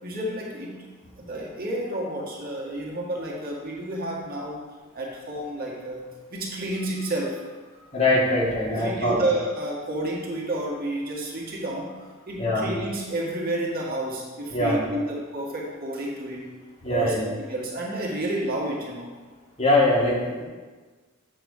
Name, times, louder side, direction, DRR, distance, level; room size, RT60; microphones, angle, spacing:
voice 1, 0.0-4.7 4.9-7.8 8.7-16.5 16.9-17.1 17.5-19.1, right 1 dB, 45° right, -3 dB, 1.7 m, -30 dB
voice 2, 7.9-9.3 12.4-12.7 14.5-14.8 16.8-17.3 19.6-20.4, left 1 dB, 30° left, -5 dB, 1.9 m, -22 dB
7.8 x 6.1 x 4.8 m, 1.4 s
head